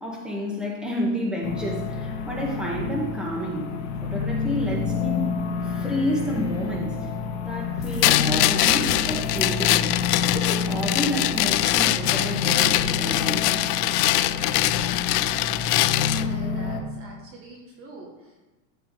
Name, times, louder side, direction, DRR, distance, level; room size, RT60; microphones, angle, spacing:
voice 1, 0.0-3.7 4.0-5.4 5.6-7.1 7.4-9.9 10.3-13.5, equal, ahead, -3 dB, 1.8 m, -30 dB
sound 1, 1.4-16.8, left 5 dB, 55° left, 1.4 m, -29 dB
sound 2, 8.0-16.3, left 16 dB, 85° left, 0.6 m, -23 dB
voice 2, 16.1-18.4, right 2 dB, 30° right, -1 dB, 1.4 m, -44 dB
13.5 x 4.8 x 5.0 m, 1.1 s
supercardioid pair, 155°, 46 cm